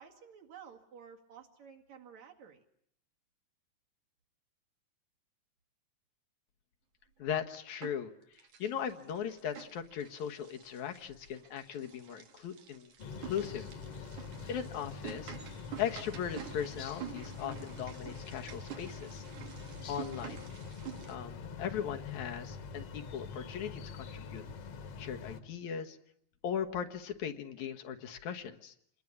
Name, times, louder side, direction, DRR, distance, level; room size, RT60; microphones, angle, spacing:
voice 1, 0.0-2.6, right 7 dB, 70° right, 2 dB, 3.7 m, -53 dB
voice 2, 7.2-8.1 8.6-12.9 13.2-13.7 14.5-15.4 15.8-19.2 19.9-20.4 21.1-24.4 25.0-26.0 26.4-28.7, left 8 dB, 75° left, 5 dB, 2.7 m, -38 dB
sound 1, 7.2-8.1 8.4-21.2, right 10 dB, 90° right, 3.6 m, -49 dB
sound 2, 13.0-25.4, left 5 dB, 60° left, 2.4 m, -45 dB
27.5 x 20.5 x 9.8 m, 0.70 s
omnidirectional pair, 3.3 m